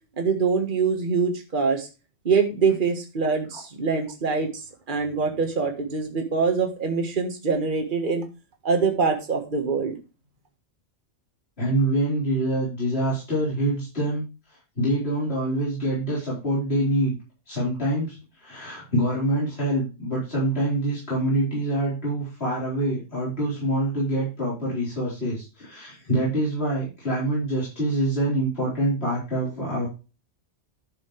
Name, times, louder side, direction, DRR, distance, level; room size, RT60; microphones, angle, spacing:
voice 1, 0.2-1.9 2.2-4.5 4.9-8.2 8.6-9.9, right 5 dB, 45° right, 3 dB, 1.7 m, -24 dB
voice 2, 11.6-17.1 17.5-29.9, right 1 dB, 55° left, -7 dB, 4.6 m, -25 dB
11.5 x 6.9 x 3.3 m, 0.30 s
omnidirectional pair, 1.2 m